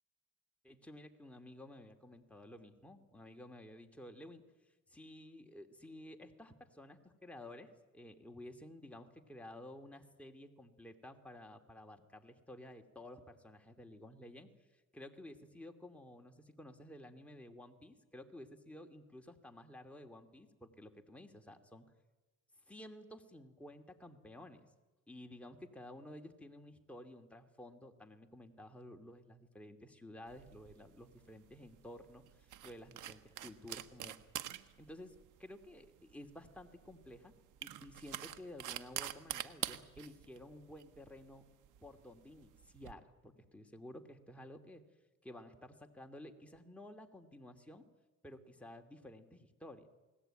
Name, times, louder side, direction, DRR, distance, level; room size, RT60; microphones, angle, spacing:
voice 1, 0.6-4.4 4.9-21.9 22.7-24.7 25.1-34.3 34.8-35.1 35.4-37.3 37.6-41.4 41.8-44.8 45.2-47.8 48.2-49.9, left 1 dB, 5° left, 3 dB, 2.7 m, -53 dB
sound 1, 30.3-42.9, right 12 dB, 85° right, 1.4 m, -47 dB
29.0 x 19.5 x 9.1 m, 1.2 s
cardioid pair, 90°, 30 cm